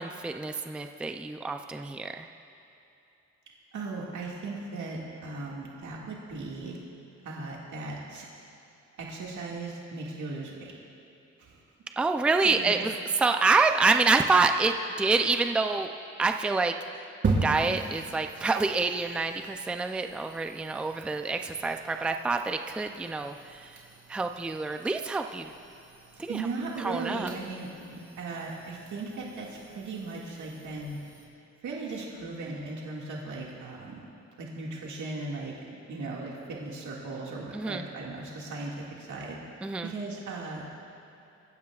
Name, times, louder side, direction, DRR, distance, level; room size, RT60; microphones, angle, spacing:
voice 1, 0.0-2.3 12.0-12.9 13.2-15.9 16.2-16.7 17.4-23.7 24.1-25.5 26.2-26.4 26.8-27.3 37.5-37.8 39.6-39.9, right 4 dB, 5° right, 6 dB, 0.4 m, -27 dB
voice 2, 3.7-6.8 7.2-8.3 9.0-10.7 11.4-11.6 12.4-12.7 26.3-31.0 31.6-34.1 34.4-35.5 35.9-39.4 39.8-40.6, right 3 dB, 85° right, -4 dB, 2.0 m, -37 dB
sound 1, 17.2-31.2, right 3 dB, 45° right, 3.6 m, -39 dB
25.5 x 15.5 x 2.4 m, 2.9 s
wide cardioid pair, 175°, 29 cm